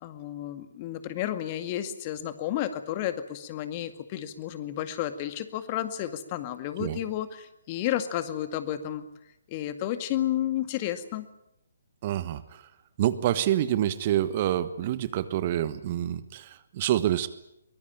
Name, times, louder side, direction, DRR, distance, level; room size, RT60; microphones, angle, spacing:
voice 1, 0.0-9.1 9.5-11.3, left 12 dB, 30° left, 10 dB, 2.1 m, -32 dB
voice 2, 12.0-12.7 13.0-17.3, right 12 dB, 35° right, 14 dB, 1.3 m, -27 dB
23.5 x 21.5 x 8.9 m, 0.83 s
figure-of-eight pair, 135°, 0 cm